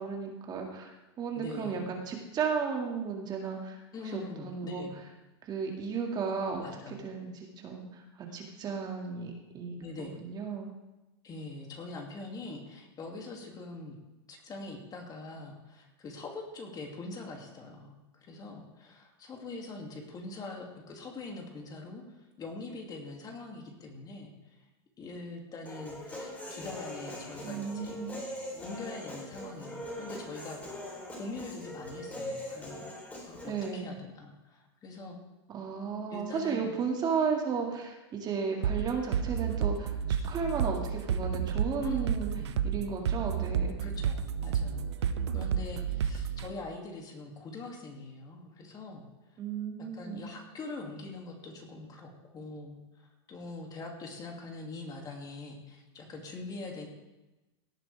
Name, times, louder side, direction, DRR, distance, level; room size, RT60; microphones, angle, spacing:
voice 1, 0.0-3.8 4.1-4.9 5.4-6.6 7.0-10.7 27.4-28.1 33.4-33.9 35.5-42.3 42.6-43.7 49.4-50.3, right 6 dB, 30° right, 1 dB, 2.2 m, -34 dB
voice 2, 1.3-1.9 3.9-4.9 6.6-7.0 8.3-8.4 9.8-10.2 11.2-14.0 14.3-24.6 25.0-28.0 28.6-32.9 33.2-35.2 36.1-36.7 41.8-42.6 43.8-49.4 49.9-56.9, left 3 dB, 25° left, 1 dB, 2.6 m, -43 dB
Human voice, 25.7-33.7, left 1 dB, 10° left, 3.9 m, -42 dB
sound 1, 38.6-46.5, right 8 dB, 85° right, 0.8 m, -30 dB
17.5 x 9.0 x 3.5 m, 1.0 s
hypercardioid pair, 120°, 14 cm